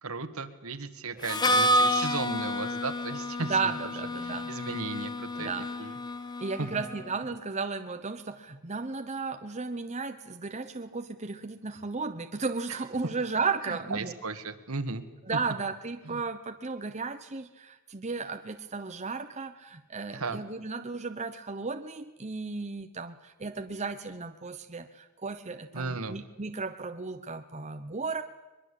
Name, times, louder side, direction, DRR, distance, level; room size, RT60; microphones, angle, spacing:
voice 1, 0.0-3.7 4.2-5.5 5.8-5.9 6.6-6.8 13.6-15.0 16.0-16.2 20.1-20.4 25.7-26.2, right 3 dB, 70° right, 9 dB, 1.8 m, -35 dB
Harmonica, 1.2-7.0, left 1 dB, 20° left, 1.1 m, -29 dB
voice 2, 3.4-4.5 5.4-5.7 6.4-14.1 15.3-28.2, right 4 dB, 30° right, 7 dB, 0.9 m, -34 dB
22.5 x 22.5 x 8.4 m, 1.1 s
head